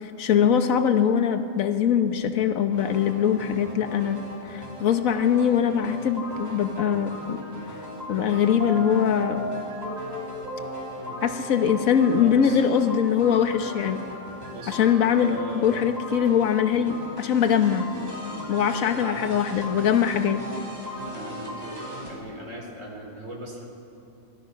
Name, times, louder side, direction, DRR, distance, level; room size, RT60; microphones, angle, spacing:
voice 1, 0.0-4.2 4.4-7.4 8.1-9.4 11.2-14.0 14.7-17.9 18.5-20.4, left 8 dB, 70° left, 8 dB, 1.5 m, -22 dB
sound 1, 2.7-22.1, equal, 30° right, 4.7 m, -37 dB
voice 2, 12.1-12.7 14.4-14.9 15.2-15.8 18.9-19.2 21.1-21.8 22.1-23.7, right 1 dB, 60° right, 1 dB, 4.2 m, -39 dB
24.5 x 23.0 x 5.9 m, 2.6 s
omnidirectional pair, 1.5 m